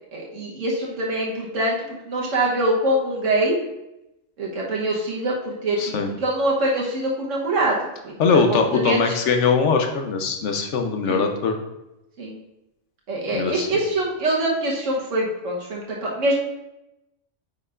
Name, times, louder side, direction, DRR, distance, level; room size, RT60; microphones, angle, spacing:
voice 1, 0.1-3.6 4.4-7.8 8.0-9.1 11.0-11.2 12.2-12.4 13.1-16.4, right 1 dB, 90° right, -3 dB, 1.4 m, -24 dB
voice 2, 5.8-6.1 8.2-11.6 13.3-13.7, left 5 dB, 75° left, 4 dB, 1.1 m, -21 dB
9.2 x 5.4 x 2.4 m, 0.92 s
omnidirectional pair, 1.3 m